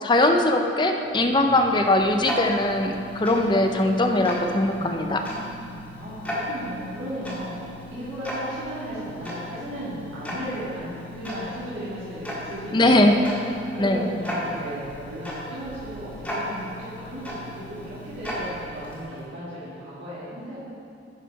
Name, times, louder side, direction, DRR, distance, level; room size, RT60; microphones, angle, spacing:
voice 1, 0.0-5.2 12.7-13.2 13.8-14.0, left 1 dB, 25° left, 4 dB, 0.5 m, -20 dB
Tick-tock, 1.0-19.3, equal, 10° left, 1.6 m, -36 dB
voice 2, 4.7-13.2 13.7-20.7, equal, 70° right, -11 dB, 2.2 m, -35 dB
11.0 x 4.9 x 4.7 m, 2.5 s
head